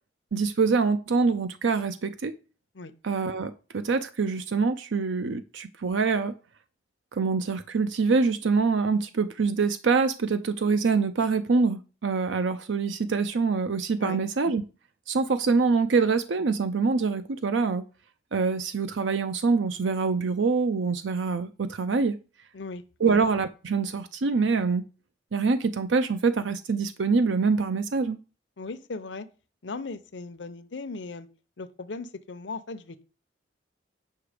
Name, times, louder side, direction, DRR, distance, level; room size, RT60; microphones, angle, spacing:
voice 1, 0.3-2.3 3.0-6.4 7.1-14.6 15.1-17.8 18.3-22.2 23.0-24.8 25.3-28.2, right 4 dB, 85° right, 0.6 m, -25 dB
voice 2, 22.5-23.2 28.6-29.3 29.6-31.3 31.6-33.0, left 3 dB, 75° left, 0.7 m, -38 dB
8.4 x 5.9 x 5.0 m
head